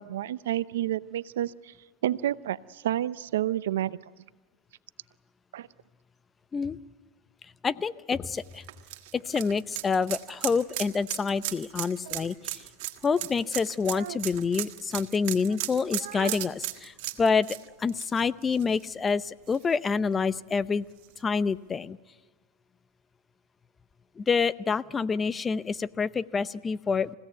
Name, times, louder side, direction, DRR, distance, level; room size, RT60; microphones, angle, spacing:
voice 1, 0.0-1.7 2.0-4.0 5.5-5.7 12.1-12.2 13.9-14.2 16.0-16.3, right 12 dB, 80° right, 16 dB, 0.7 m, -30 dB
voice 2, 7.6-8.6 9.1-12.6 13.0-20.8 21.2-22.0 24.2-27.1, left 5 dB, 20° left, 16 dB, 0.7 m, -27 dB
sound 1, 8.3-19.1 19.5-19.6 21.0-21.1, right 16 dB, 65° right, 1.7 m, -36 dB
28.5 x 16.5 x 9.3 m, 1.3 s
hypercardioid pair, 110°, 0 cm